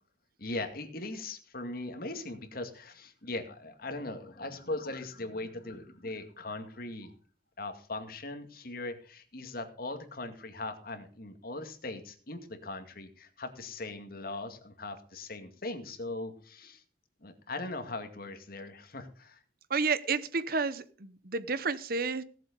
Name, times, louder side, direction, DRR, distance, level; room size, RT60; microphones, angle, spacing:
voice 1, 0.4-7.1 7.6-16.8 17.2-19.4, left 2 dB, 55° left, 6 dB, 2.3 m, -40 dB
voice 2, 19.7-22.2, right 4 dB, 55° right, 15 dB, 0.9 m, -31 dB
17.5 x 7.6 x 5.3 m, 0.43 s
head